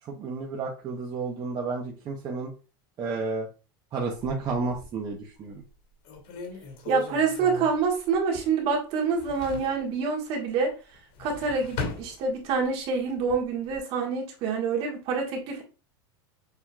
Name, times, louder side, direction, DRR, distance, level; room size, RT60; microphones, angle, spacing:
voice 1, 0.0-2.5 3.0-3.5 3.9-5.6, right 4 dB, 30° right, 0.9 m, -31 dB
sound 1, 4.1-5.1 5.6-5.7 6.0-8.7 9.0-9.8 10.9-12.7 13.1-13.8, left 3 dB, 65° left, 2.1 m, -38 dB
voice 2, 6.9-10.7 11.2-15.6, right 5 dB, 45° right, 1.7 m, -27 dB
6.9 x 2.9 x 2.3 m
supercardioid pair, 130°, 13 cm